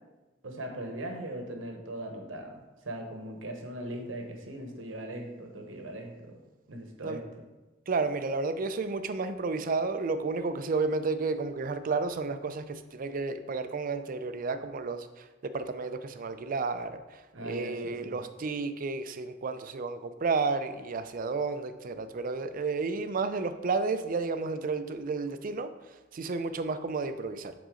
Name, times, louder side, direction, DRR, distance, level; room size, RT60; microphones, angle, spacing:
voice 1, 0.4-6.4 6.7-7.4 17.3-18.2, right 1 dB, 85° right, 3 dB, 1.1 m, -39 dB
voice 2, 7.9-25.7 26.1-27.5, right 4 dB, 45° right, 10 dB, 0.4 m, -32 dB
8.0 x 3.8 x 3.8 m, 1.2 s
head